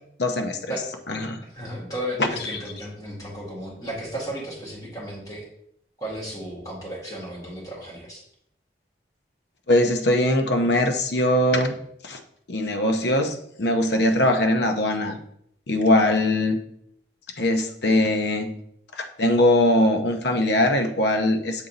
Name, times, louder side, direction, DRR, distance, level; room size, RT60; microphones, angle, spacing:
voice 1, 0.2-0.8 1.1-1.4 2.2-2.6 9.7-11.8 12.0-12.2 12.5-15.2 15.7-16.6 17.4-18.5 18.9-21.7, left 1 dB, 75° left, 6 dB, 0.8 m, -21 dB
voice 2, 1.5-5.5 6.0-8.2, equal, 20° left, -4 dB, 2.0 m, -34 dB
7.2 x 4.0 x 3.9 m, 0.71 s
head